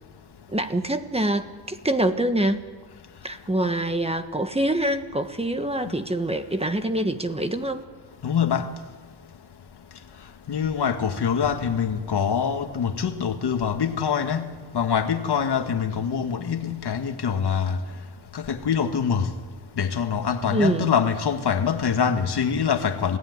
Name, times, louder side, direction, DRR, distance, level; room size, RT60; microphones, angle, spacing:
voice 1, 0.5-2.7 3.2-7.9 20.5-20.9, right 1 dB, 15° right, 1.4 m, -25 dB
voice 2, 8.2-8.7 10.5-14.5 14.7-17.8 18.3-19.3 19.8-23.2, left 7 dB, 65° left, 1.9 m, -24 dB
27.5 x 16.5 x 9.6 m
cardioid pair, 90°, 42 cm